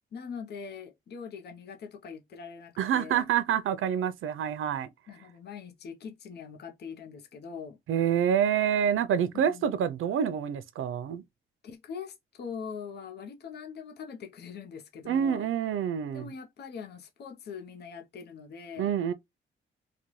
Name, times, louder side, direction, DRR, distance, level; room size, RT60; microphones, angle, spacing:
voice 1, 0.1-3.3 5.1-7.8 9.3-9.7 11.6-15.5 16.1-18.9, left 6 dB, 55° left, 0.7 m, -42 dB
voice 2, 2.8-4.9 7.9-11.2 15.1-16.3 18.8-19.1, right 8 dB, 80° right, 0.6 m, -27 dB
4.0 x 2.2 x 3.0 m
cardioid pair, 140°, 21 cm